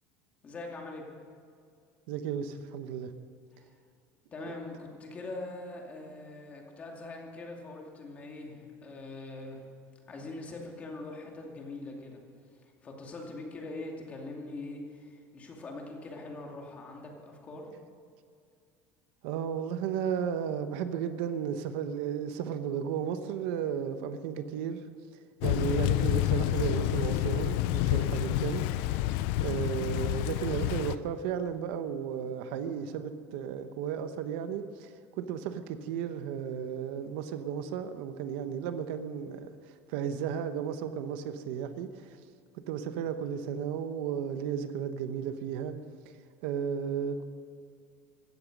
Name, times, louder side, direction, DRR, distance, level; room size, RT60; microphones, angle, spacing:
voice 1, 0.4-1.1 3.5-3.7 4.3-9.6 10.1-12.2 12.5-17.7, left 2 dB, 20° left, 0 dB, 2.4 m, -42 dB
voice 2, 2.1-3.1 4.4-4.5 19.2-24.8 25.4-28.6 29.4-42.2 42.7-45.8 46.0-46.1 46.4-47.2, right 8 dB, 70° right, 10 dB, 1.0 m, -34 dB
Thunder / Rain, 25.4-31.0, left 14 dB, 65° left, 0.5 m, -28 dB
16.5 x 13.5 x 5.3 m, 2.3 s
cardioid pair, 170°, 7 cm